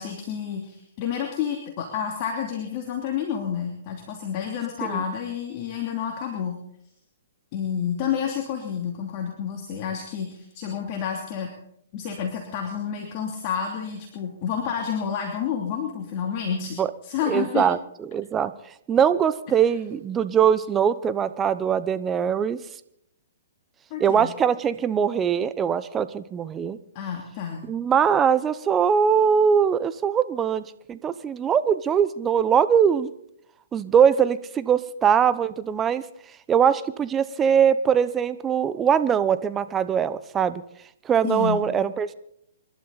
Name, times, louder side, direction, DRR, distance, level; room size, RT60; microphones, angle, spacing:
voice 1, 0.0-6.6 7.5-11.5 11.9-17.7 23.9-24.3 26.9-27.6 41.2-41.6, left 8 dB, 40° left, 1 dB, 2.8 m, -29 dB
voice 2, 17.3-18.5 18.9-22.6 24.0-26.8 27.6-33.1 33.7-36.0 36.5-40.6 41.0-42.1, right 7 dB, 20° right, 14 dB, 0.8 m, -22 dB
28.5 x 12.0 x 4.1 m, 0.73 s
hypercardioid pair, 135°, 0 cm